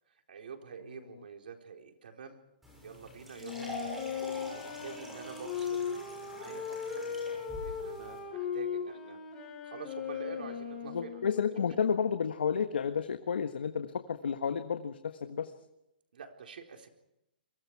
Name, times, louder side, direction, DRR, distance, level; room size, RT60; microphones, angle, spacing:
voice 1, 0.1-2.4 2.8-3.7 4.5-5.8 6.1-9.2 9.6-11.3 16.1-16.9, right 6 dB, 65° right, 3 dB, 4.1 m, -47 dB
sound 1, 2.6-8.2, equal, 5° right, 6.3 m, -46 dB
Wind instrument woodwind instrument, 3.4-11.9, left 7 dB, 15° left, 6.7 m, -38 dB
voice 2, 3.6-3.9 10.8-15.5, left 7 dB, 90° left, 8 dB, 1.5 m, -32 dB
28.5 x 23.5 x 4.8 m, 0.88 s
hypercardioid pair, 170°, 5 cm